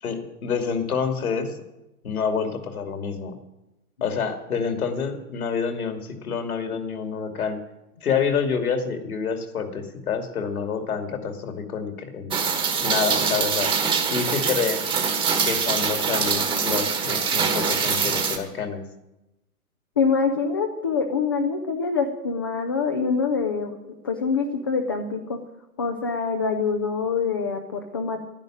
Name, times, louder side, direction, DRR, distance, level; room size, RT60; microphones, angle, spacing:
voice 1, 0.0-1.5 2.0-3.3 4.0-7.6 8.0-12.3 12.8-13.7 14.1-14.8 15.4-18.8, left 6 dB, 70° left, 6 dB, 2.8 m, -27 dB
Rain, 12.3-18.4, right 6 dB, 10° right, 1.2 m, -24 dB
voice 2, 20.0-23.8 24.0-25.4 25.8-28.2, left 5 dB, 15° left, 4 dB, 0.4 m, -25 dB
11.5 x 10.5 x 8.9 m, 0.96 s
hypercardioid pair, 135°, 45 cm